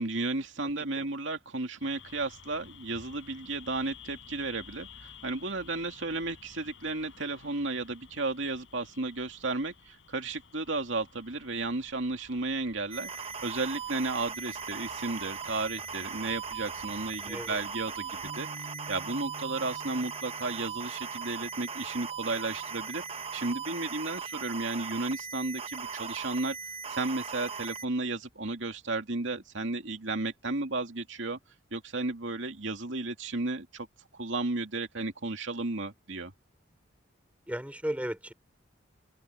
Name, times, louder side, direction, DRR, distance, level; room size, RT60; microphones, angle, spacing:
voice 1, 0.0-13.1 13.4-18.5 18.9-23.0 23.3-26.6 26.9-31.4 31.7-33.9 34.1-36.3, right 3 dB, 70° right, 2.5 m, -33 dB
voice 2, 0.6-1.0 17.2-17.6 37.5-38.3, equal, 5° right, 3.2 m, -36 dB
sound 1, 1.8-18.3, left 5 dB, 70° left, 4.9 m, -54 dB
sound 2, 12.9-27.9, right 6 dB, 30° right, 1.0 m, -39 dB
sound 3, 18.2-24.7, equal, 55° right, 8.0 m, -52 dB
open air
head